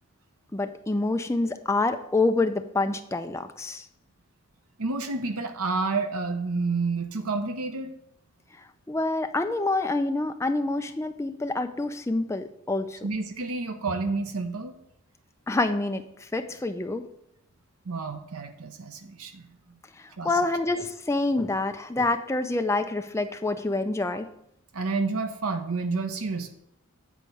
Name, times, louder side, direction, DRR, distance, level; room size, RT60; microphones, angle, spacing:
voice 1, 0.5-3.9 8.9-13.0 15.5-17.0 20.0-24.3, left 2 dB, 10° left, 7 dB, 0.4 m, -27 dB
voice 2, 4.8-7.9 13.0-14.8 17.8-19.8 20.2-20.5 24.7-26.5, right 3 dB, 80° right, 7 dB, 0.8 m, -30 dB
8.4 x 4.7 x 5.3 m, 0.79 s
head